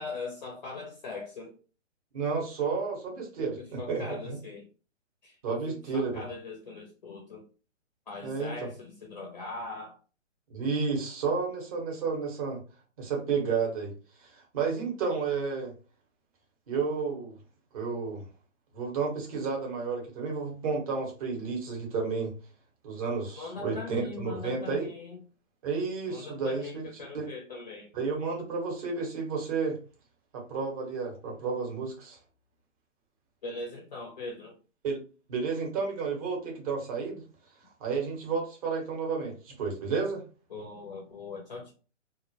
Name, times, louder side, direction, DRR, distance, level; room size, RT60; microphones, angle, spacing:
voice 1, 0.0-1.5 3.4-3.5 3.8-4.7 5.2-7.4 8.1-10.0 23.4-25.2 26.0-27.9 33.4-34.5 40.5-41.7, left 3 dB, 35° left, 0.4 m, -40 dB
voice 2, 2.1-4.4 5.4-6.1 8.2-8.7 10.5-12.6 13.0-13.9 14.2-15.7 16.7-17.3 17.7-18.2 18.7-22.3 22.8-24.9 25.6-26.9 27.1-27.3 27.9-29.8 30.3-32.2 34.8-35.0 35.3-37.2 37.8-40.2, right 5 dB, 30° right, 0.7 m, -31 dB
2.2 x 2.0 x 2.7 m
hypercardioid pair, 145°, 38 cm